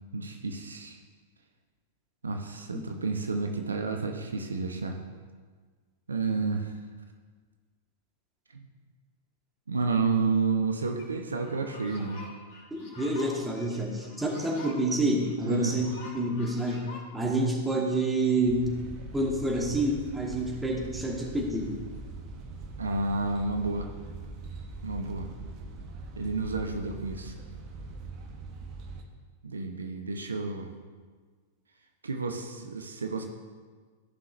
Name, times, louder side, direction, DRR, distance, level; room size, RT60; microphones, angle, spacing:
voice 1, 0.1-1.0 2.2-5.0 6.1-6.7 8.5-8.7 9.7-12.2 15.4-15.8 22.8-23.9 24.8-25.3 26.2-27.3 29.4-30.7 32.0-33.3, right 4 dB, 80° right, 4 dB, 0.7 m, -30 dB
sound 1, 11.0-11.1 11.4-17.0, left 3 dB, 50° left, 2.3 m, -47 dB
voice 2, 12.7-16.8 17.1-18.7 19.1-21.7, right 2 dB, 10° right, -1 dB, 1.5 m, -28 dB
sound 2, 18.4-29.0, right 3 dB, 40° right, 1.0 m, -42 dB
13.5 x 5.7 x 2.5 m, 1.5 s
figure-of-eight pair, 100°, 0 cm